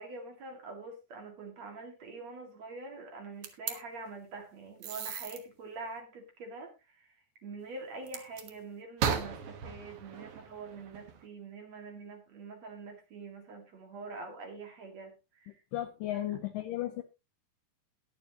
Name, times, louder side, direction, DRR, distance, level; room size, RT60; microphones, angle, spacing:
voice 1, 0.0-7.1 7.4-15.6 16.1-16.2, right 3 dB, 50° right, 4 dB, 2.8 m, -45 dB
sound 1, 3.4-3.8 4.8-5.4 8.1-8.5 9.0-11.2, right 7 dB, 90° right, 1.2 m, -36 dB
voice 2, 15.7-17.0, left 14 dB, 80° left, 9 dB, 2.0 m, -34 dB
21.0 x 6.9 x 2.9 m, 0.26 s
omnidirectional pair, 4.8 m